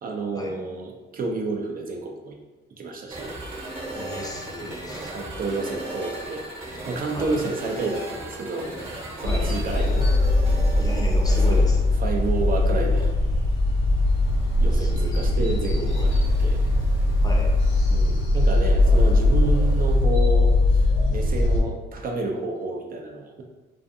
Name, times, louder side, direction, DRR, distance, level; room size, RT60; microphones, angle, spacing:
voice 1, 0.0-2.4 2.8-3.4 4.6-8.7 9.2-10.1 11.5-11.7 12.0-13.1 14.6-16.6 17.9-23.4, right 3 dB, 45° right, 1 dB, 0.4 m, -30 dB
sound 1, 3.1-20.0, right 2 dB, 30° right, 0.9 m, -36 dB
voice 2, 3.9-5.1 5.5-5.6 7.1-7.4 9.3-9.5 10.8-11.8 14.7-16.1 17.2-17.5, left 2 dB, 20° left, -1 dB, 0.5 m, -36 dB
sound 2, 9.2-21.6, left 2 dB, 80° left, 0.6 m, -20 dB
2.4 x 2.4 x 2.6 m, 1.2 s
cardioid pair, 90°, 20 cm